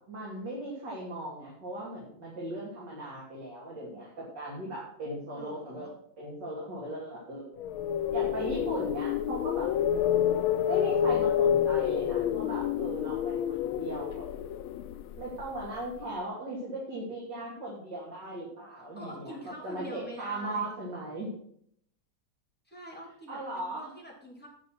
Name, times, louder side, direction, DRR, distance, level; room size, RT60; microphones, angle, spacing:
voice 1, 0.0-5.9 6.2-7.6 8.1-9.7 10.6-14.2 15.2-21.3 23.3-23.9, right 1 dB, 60° right, -5 dB, 3.5 m, -38 dB
voice 2, 5.3-5.9 18.7-20.7 22.7-24.5, equal, 5° left, -4 dB, 3.6 m, -45 dB
sound 1, 7.6-15.7, left 10 dB, 85° left, 1.5 m, -28 dB
11.0 x 6.2 x 6.0 m, 0.67 s
omnidirectional pair, 2.2 m